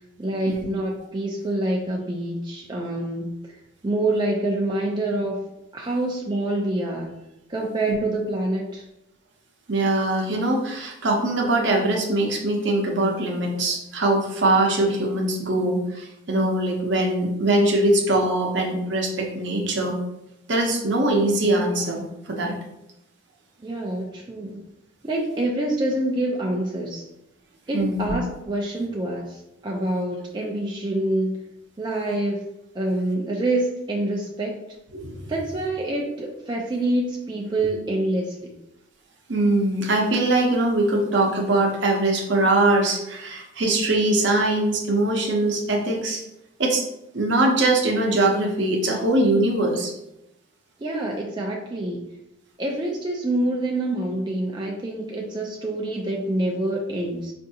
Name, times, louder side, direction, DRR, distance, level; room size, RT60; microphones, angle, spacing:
voice 1, 0.2-5.4 5.7-7.2 7.5-8.8 23.6-24.6 25.0-27.1 27.7-31.4 31.8-32.4 32.7-34.6 35.3-38.5 50.8-52.0 52.6-57.3, right 1 dB, 25° right, -1 dB, 0.4 m, -26 dB
voice 2, 9.7-20.0 20.5-22.6 27.7-28.1 34.9-35.2 39.3-46.2 46.6-46.8 47.1-49.9, right 2 dB, 65° right, 0 dB, 0.7 m, -22 dB
4.5 x 2.6 x 2.7 m, 0.87 s
head